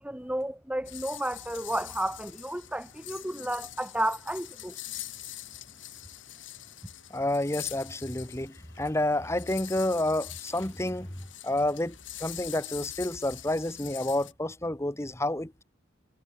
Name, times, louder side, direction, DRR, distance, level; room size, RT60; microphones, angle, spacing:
voice 1, 0.0-4.7, right 1 dB, 5° right, 1.3 m, -32 dB
sound 1, 0.9-14.3, left 14 dB, 75° left, 5.5 m, -44 dB
voice 2, 7.1-11.1 11.4-11.9 12.2-15.6, left 1 dB, 15° left, 1.5 m, -29 dB
head